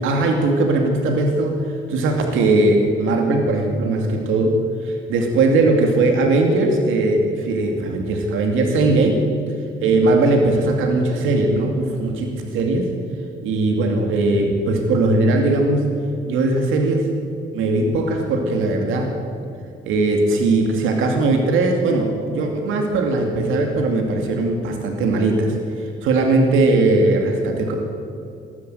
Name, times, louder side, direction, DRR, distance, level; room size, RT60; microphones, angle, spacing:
voice 1, 0.0-9.2 9.8-12.9 13.4-15.9 16.3-17.1 17.5-19.1 19.9-27.8, right 2 dB, 90° right, 3 dB, 2.6 m, -19 dB
20.5 x 13.5 x 9.3 m, 2.5 s
cardioid pair, 90°, 20 cm